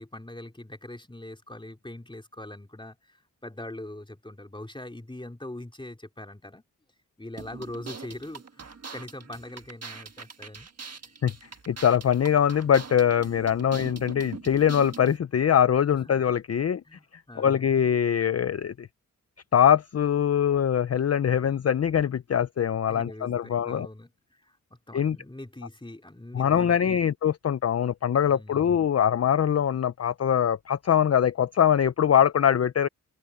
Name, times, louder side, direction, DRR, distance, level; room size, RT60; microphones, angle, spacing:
voice 1, 0.0-6.6 7.2-10.7 15.9-16.1 16.8-17.8 22.9-27.0 28.3-28.7, left 1 dB, 15° left, 3.3 m, -42 dB
sound 1, 7.4-15.2, right 5 dB, 50° right, 1.5 m, -42 dB
voice 2, 11.2-18.9 19.5-23.9 24.9-25.2 26.3-32.9, left 9 dB, 50° left, 0.6 m, -23 dB
open air
cardioid pair, 60°, 33 cm